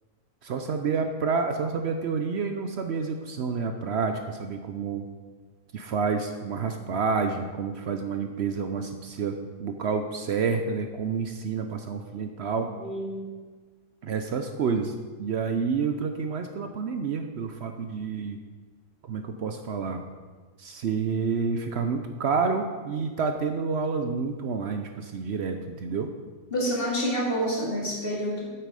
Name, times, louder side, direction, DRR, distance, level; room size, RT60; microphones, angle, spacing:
voice 1, 0.4-5.1 5.7-12.7 14.0-14.9 15.2-18.4 19.1-20.0 20.6-26.1, right 5 dB, 65° right, 6 dB, 0.8 m, -29 dB
voice 2, 12.5-13.3 26.5-28.5, equal, 45° left, -4 dB, 2.5 m, -28 dB
8.9 x 7.8 x 4.9 m, 1.4 s
omnidirectional pair, 1.3 m